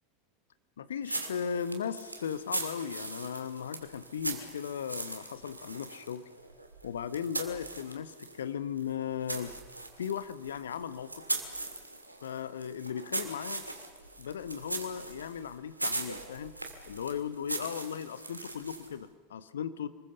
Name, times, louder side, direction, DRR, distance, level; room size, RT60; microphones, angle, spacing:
voice 1, 0.8-6.2 6.8-9.5 10.0-11.2 12.2-13.7 14.2-16.5 16.9-19.9, left 8 dB, 70° left, 13 dB, 1.1 m, -37 dB
sound 1, 1.0-8.4 8.8-19.0, right 2 dB, 90° right, 2.3 m, -40 dB
27.0 x 20.5 x 6.9 m, 1.5 s
figure-of-eight pair, 80°, 0 cm